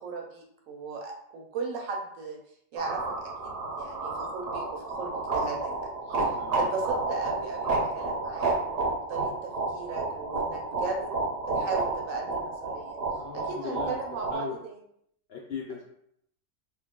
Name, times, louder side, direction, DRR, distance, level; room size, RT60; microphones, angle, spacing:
voice 1, 0.0-2.4 2.7-5.9 6.6-11.1 11.5-13.0 13.3-14.8, right 4 dB, 75° right, 1 dB, 1.0 m, -37 dB
sound 1, 2.8-14.3, right 3 dB, 50° right, 0.9 m, -31 dB
voice 2, 6.1-6.7 13.2-14.6 15.3-15.8, left 6 dB, 65° left, -2 dB, 0.6 m, -39 dB
3.0 x 2.4 x 3.6 m, 0.73 s
omnidirectional pair, 1.5 m